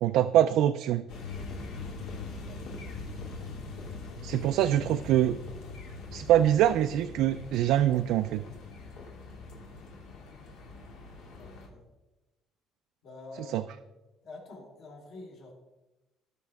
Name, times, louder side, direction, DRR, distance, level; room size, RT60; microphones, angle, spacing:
voice 1, 0.0-1.1 4.2-5.4 6.1-8.4 13.5-13.6, right 12 dB, 70° right, 8 dB, 0.4 m, -24 dB
sound 1, 1.1-11.7, left 3 dB, 75° left, 2.4 m, -42 dB
voice 2, 11.4-11.8 13.0-13.6 14.2-15.5, left 2 dB, 55° left, -2 dB, 3.7 m, -47 dB
18.0 x 6.2 x 3.5 m, 1.0 s
cardioid pair, 175°, 0 cm